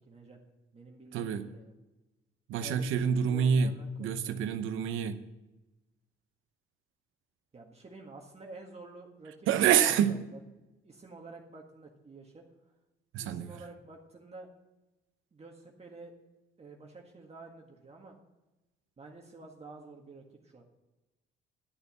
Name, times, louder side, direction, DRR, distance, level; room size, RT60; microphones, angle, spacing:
voice 1, 0.1-0.4 0.7-1.7 2.6-4.3 7.5-9.5 10.0-10.4 10.8-12.4 13.2-14.5 15.3-16.1 16.6-18.2 19.0-20.6, right 3 dB, 30° right, 1.8 m, -50 dB
voice 2, 1.1-1.5 2.5-5.2 9.5-10.2 13.1-13.5, right 8 dB, 90° right, 0.8 m, -27 dB
11.0 x 6.9 x 7.2 m
cardioid pair, 90°, 20 cm